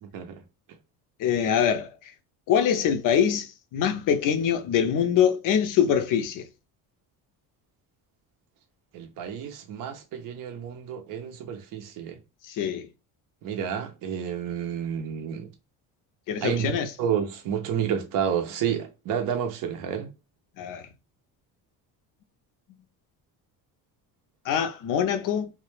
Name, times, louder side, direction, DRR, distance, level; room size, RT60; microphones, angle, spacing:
voice 1, 0.0-0.4 8.9-12.2 13.4-15.5 16.4-20.1, right 8 dB, 55° right, 0.5 m, -30 dB
voice 2, 1.2-2.1 2.5-6.5 12.5-12.9 16.3-16.9 20.6-20.9 24.4-25.5, left 8 dB, 55° left, 0.5 m, -24 dB
2.1 x 2.1 x 3.0 m
cardioid pair, 105°, 39 cm